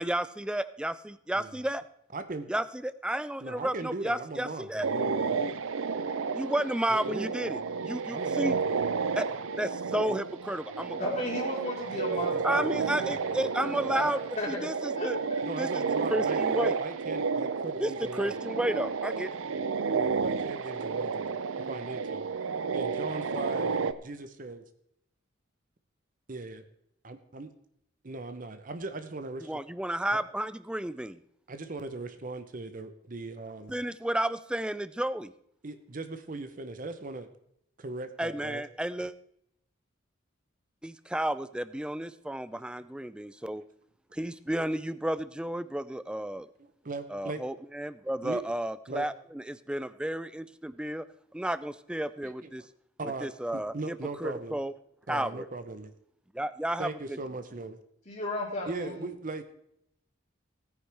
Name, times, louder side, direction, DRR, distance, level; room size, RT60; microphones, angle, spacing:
voice 1, 0.0-1.8 2.5-4.9 6.3-8.6 9.2-9.3 9.6-11.3 12.4-14.2 14.5-15.2 15.6-15.8 16.1-16.8 17.8-19.4 29.5-31.2 33.7-35.3 38.2-39.1 40.8-43.6 44.1-46.5 47.1-51.1 51.3-52.7 53.2-54.7 55.1-55.5 56.3-57.2, right 1 dB, 5° right, 15 dB, 0.3 m, -32 dB
voice 2, 2.1-2.5 3.4-5.4 6.9-7.3 8.1-8.8 10.1-10.2 11.9-13.4 15.4-18.3 19.9-21.3 21.7-22.3 22.7-24.6 26.3-26.6 27.0-27.5 28.0-29.5 30.1-30.2 31.5-33.7 35.6-37.3 37.8-38.6 46.8-47.4 48.2-48.4 48.9-49.0 52.4-52.5 53.0-54.6 55.1-55.9 56.8-57.8 58.7-59.4, right 3 dB, 40° right, 9 dB, 0.7 m, -39 dB
sound 1, 4.8-23.9, right 5 dB, 80° right, 0.5 m, -31 dB
voice 3, 11.0-12.6 12.9-14.0 14.4-14.7 14.9-15.1 58.1-59.1, left 1 dB, 35° left, -5 dB, 2.5 m, -35 dB
17.0 x 9.6 x 3.4 m, 0.74 s
head